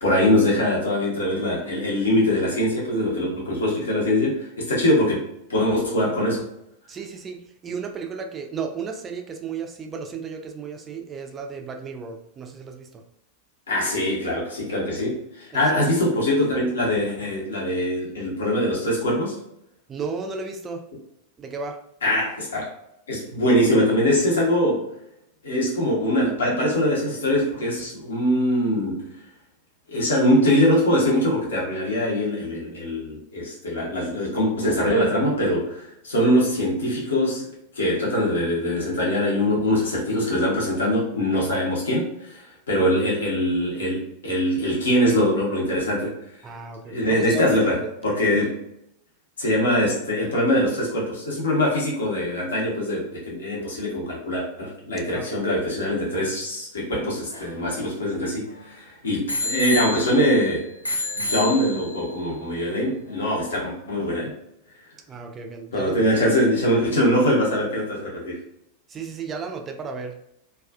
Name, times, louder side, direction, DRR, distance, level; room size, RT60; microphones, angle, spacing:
voice 1, 0.0-5.2 5.5-6.4 13.7-19.3 22.0-22.7 23.1-24.9 25.4-29.1 29.9-37.5 37.7-46.1 46.9-48.6 49.4-60.7 61.2-64.3 65.7-68.4, left 1 dB, 65° left, -3 dB, 0.8 m, -23 dB
voice 2, 6.9-13.0 15.6-15.8 19.9-20.9 21.4-21.8 46.4-47.6 55.1-55.3 65.1-66.4 68.9-70.2, right 5 dB, 20° right, 3 dB, 0.3 m, -34 dB
Bicycle bell, 57.0-58.6 59.3-60.4 60.8-62.1 62.8-62.9, left 1 dB, 90° left, 0.3 m, -30 dB
2.3 x 2.3 x 2.3 m, 0.81 s
figure-of-eight pair, 90°, 0 cm